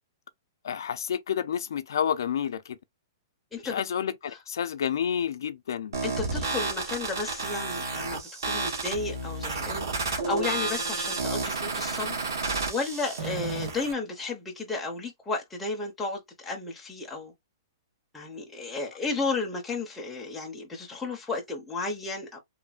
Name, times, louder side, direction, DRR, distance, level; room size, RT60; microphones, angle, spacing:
voice 1, 0.6-2.8 3.6-6.0, left 8 dB, 70° left, 0.4 m, -30 dB
voice 2, 3.5-3.8 6.0-17.3 18.1-22.4, left 3 dB, 5° left, 0.5 m, -33 dB
sound 1, 5.9-13.9, right 3 dB, 85° right, 1.1 m, -31 dB
3.1 x 2.1 x 2.4 m
hypercardioid pair, 180°, 2 cm